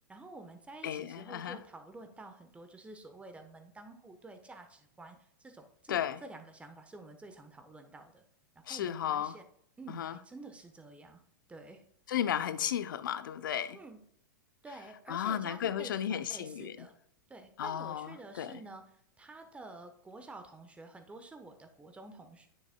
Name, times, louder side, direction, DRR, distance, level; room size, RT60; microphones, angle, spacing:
voice 1, 0.1-8.2 8.5-9.4 9.8-11.2 11.5-11.8 12.6-12.7 13.7-14.0 14.6-16.9 17.3-22.5, right 2 dB, 10° right, 1.0 m, -50 dB
voice 2, 0.8-1.6 5.9-6.2 8.7-9.4 9.9-10.1 12.1-13.8 15.1-16.7 17.6-18.1 18.4-18.5, left 10 dB, 75° left, 0.5 m, -34 dB
9.6 x 6.6 x 2.2 m
hypercardioid pair, 105°, 11 cm